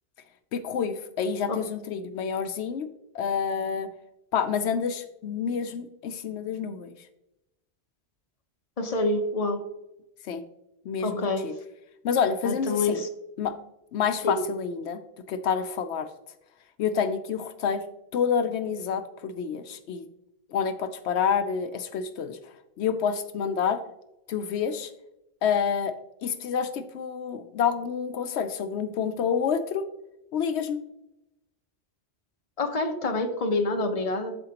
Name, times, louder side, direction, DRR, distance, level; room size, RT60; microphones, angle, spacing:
voice 1, 0.5-2.9 3.1-3.9 4.3-6.9 10.3-10.4 10.9-11.5 12.0-13.0 13.4-13.5 13.9-15.0 15.3-16.1 16.8-17.8 18.1-20.1 20.5-22.4 22.8-23.8 24.3-24.9 25.4-25.9 26.2-29.9 30.3-30.8, left 7 dB, 80° left, 9 dB, 0.9 m, -28 dB
voice 2, 8.8-9.6 11.0-11.5 12.4-13.1 14.2-14.4 32.6-34.4, left 2 dB, 35° left, 5 dB, 1.0 m, -27 dB
8.8 x 6.9 x 2.9 m, 0.88 s
omnidirectional pair, 1.1 m